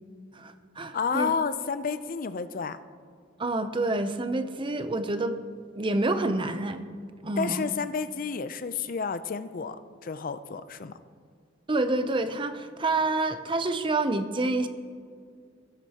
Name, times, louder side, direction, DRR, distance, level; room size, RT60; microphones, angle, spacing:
voice 1, 0.3-1.3 3.4-5.4 5.8-6.8 7.2-7.6 11.7-14.7, right 2 dB, 25° right, 10 dB, 0.6 m, -28 dB
voice 2, 0.9-2.8 7.4-9.8 10.0-11.0, left 5 dB, 45° left, 12 dB, 0.5 m, -30 dB
18.5 x 7.7 x 2.9 m, 2.2 s
head